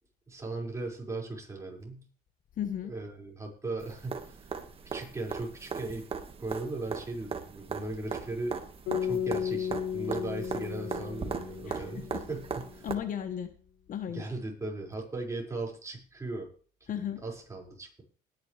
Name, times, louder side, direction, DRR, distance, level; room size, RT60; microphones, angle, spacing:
voice 1, 0.3-2.1 2.9-4.5 4.8-6.0 6.4-8.6 9.0-12.9 14.1-16.5 17.2-18.0, right 2 dB, 15° right, -1 dB, 5.7 m, -38 dB
voice 2, 2.6-2.9 11.7-12.2 12.8-13.5 13.9-14.2 16.9-17.2, left 9 dB, 50° left, 9 dB, 1.3 m, -35 dB
sound 1, 3.8-12.9 14.9-15.0, right 5 dB, 35° right, 1.8 m, -39 dB
sound 2, 8.9-13.1, left 8 dB, 85° left, 5.9 m, -35 dB
20.5 x 10.0 x 3.4 m, 0.41 s
cardioid pair, 110°, 17 cm